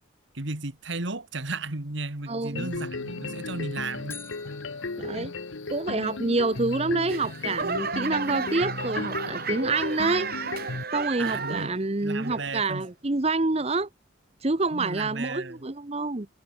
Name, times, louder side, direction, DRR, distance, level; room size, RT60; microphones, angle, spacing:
voice 1, 0.3-4.2 11.2-11.8 12.0-12.9 14.7-15.7, right 3 dB, 65° right, 2.1 m, -34 dB
voice 2, 2.3-2.7 5.0-5.3 5.7-10.3 10.9-13.9 14.4-16.3, right 3 dB, 30° right, 0.9 m, -27 dB
sound 1, 2.6-10.8, left 3 dB, 75° left, 1.0 m, -35 dB
sound 2, 4.1-6.2, left 4 dB, 10° left, 4.5 m, -47 dB
Laughter / Clapping / Crowd, 7.1-11.9 12.2-12.7 13.3-13.4, right 5 dB, 50° right, 2.3 m, -33 dB
head